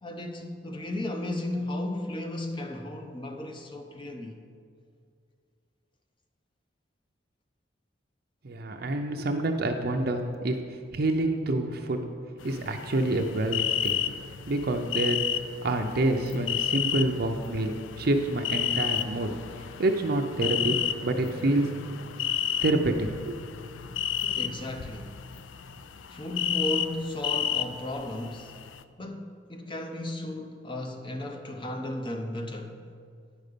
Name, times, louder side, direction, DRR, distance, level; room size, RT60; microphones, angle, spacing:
voice 1, 0.0-4.4 24.2-25.2 26.1-28.6 29.0-32.8, left 1 dB, 25° left, 0.7 m, -35 dB
voice 2, 8.4-12.0 12.4-14.0 14.5-19.3 19.8-21.7 22.6-23.4, right 2 dB, 55° right, 0.6 m, -27 dB
sound 1, 12.4-28.8, left 9 dB, 90° left, 0.4 m, -32 dB
9.5 x 5.2 x 6.7 m
head